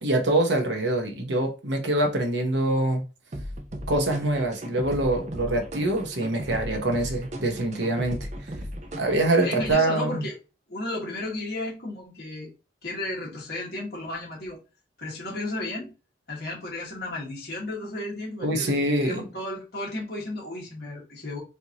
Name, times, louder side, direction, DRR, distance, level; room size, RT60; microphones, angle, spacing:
voice 1, 0.0-3.0 3.9-8.2 9.0-10.2 18.4-19.2, right 1 dB, 85° right, 1.0 m, -24 dB
sound 1, 3.3-9.7, equal, 40° right, 0.6 m, -36 dB
voice 2, 9.4-10.4 10.7-12.5 12.8-14.6 15.0-15.9 16.3-21.4, left 2 dB, 60° left, 1.6 m, -34 dB
4.5 x 2.6 x 2.9 m
head